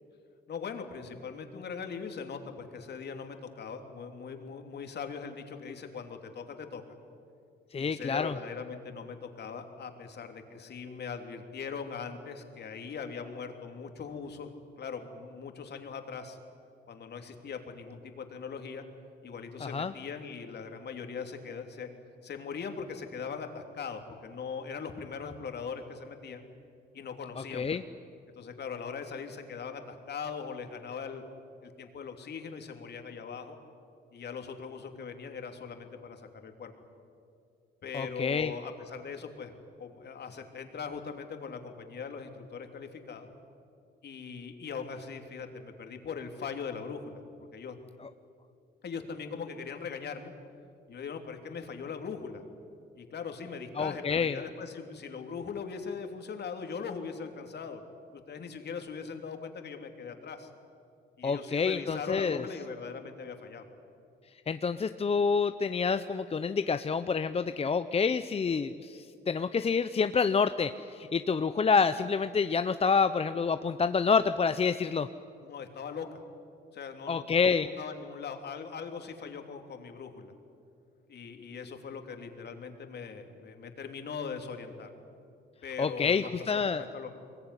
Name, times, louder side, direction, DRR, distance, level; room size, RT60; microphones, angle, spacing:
voice 1, 0.5-6.8 7.8-14.5 14.8-16.4 16.9-18.8 19.2-21.9 22.2-26.4 26.9-27.8 28.3-31.2 31.6-33.6 34.1-36.7 37.8-39.5 39.8-43.3 44.0-47.2 47.5-47.8 48.8-50.3 50.9-52.4 52.9-57.8 58.1-60.5 61.2-63.6 75.4-76.2 76.7-80.3 81.1-84.9 85.6-87.1, left 5 dB, 55° left, 5 dB, 3.0 m, -40 dB
voice 2, 7.7-8.3 19.6-19.9 27.4-27.8 37.9-38.5 53.8-54.4 61.2-62.4 64.5-75.1 77.1-77.7 85.8-86.9, left 5 dB, 30° left, 10 dB, 0.7 m, -28 dB
23.0 x 21.0 x 9.9 m, 2.4 s
cardioid pair, 90°, 20 cm